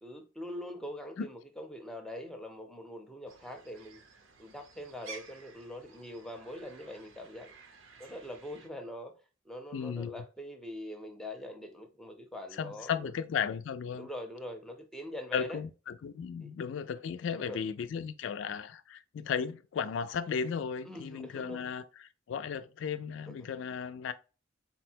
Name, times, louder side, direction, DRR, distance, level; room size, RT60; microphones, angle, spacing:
voice 1, 0.0-4.0 4.4-7.5 8.0-9.2 9.5-13.1 13.9-15.6 16.4-16.5 17.3-17.6 20.8-21.6 23.3-23.5, equal, 5° left, 0.6 m, -43 dB
sound 1, 3.3-8.7, right 4 dB, 85° right, 0.7 m, -53 dB
voice 2, 9.7-10.2 12.5-14.1 15.3-24.1, left 7 dB, 70° left, 0.3 m, -35 dB
4.0 x 2.1 x 4.3 m
head